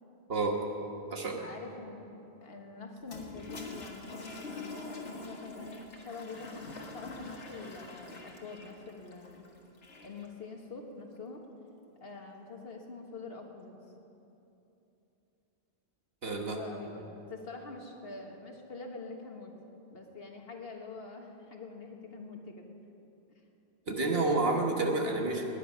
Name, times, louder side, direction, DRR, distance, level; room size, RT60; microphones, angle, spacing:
voice 1, 0.3-0.6 1.1-1.4 16.2-16.6 23.9-25.4, right 3 dB, 60° right, 2 dB, 1.6 m, -29 dB
voice 2, 1.4-2.1 2.4-9.5 10.0-11.4 12.0-13.7 16.5-19.5 19.9-22.6, left 3 dB, 60° left, 2 dB, 1.6 m, -45 dB
Toilet flush, 3.0-10.3, left 2 dB, 85° left, 1.9 m, -45 dB
19.0 x 10.0 x 5.6 m, 2.9 s
omnidirectional pair, 1.2 m